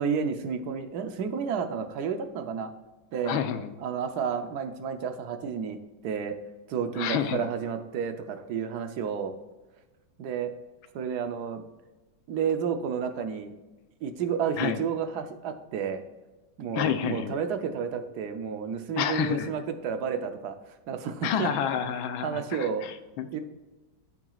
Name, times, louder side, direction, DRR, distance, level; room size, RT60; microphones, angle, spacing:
voice 1, 0.0-2.7 3.1-3.4 3.8-5.8 6.0-6.4 6.7-9.4 10.2-10.5 10.9-11.6 12.3-13.5 14.0-16.0 16.6-20.5 20.9-21.5 22.2-22.8 23.3-23.4, right 7 dB, 65° right, 8 dB, 1.1 m, -31 dB
voice 2, 3.3-3.7 7.0-7.5 14.6-14.8 16.7-17.4 19.0-19.5 21.2-23.3, left 9 dB, 85° left, 9 dB, 1.5 m, -29 dB
14.0 x 6.0 x 2.4 m, 1.1 s
omnidirectional pair, 2.1 m